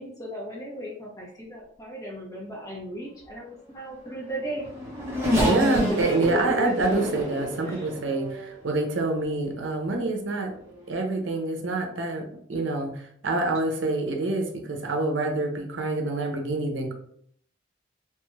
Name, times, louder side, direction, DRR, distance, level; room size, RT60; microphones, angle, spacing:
voice 1, 0.0-4.6 5.4-6.2 6.6-6.7 7.7-7.9, equal, 20° left, -3 dB, 0.8 m, -36 dB
Race car auto racing / Accelerating revving vroom, 4.2-8.7 9.4-9.5 10.7-10.8, equal, 15° right, 1.0 m, -29 dB
voice 2, 5.4-10.5 10.9-12.2 12.5-16.9, right 2 dB, 75° right, 3 dB, 0.6 m, -26 dB
2.9 x 2.3 x 3.1 m, 0.65 s
head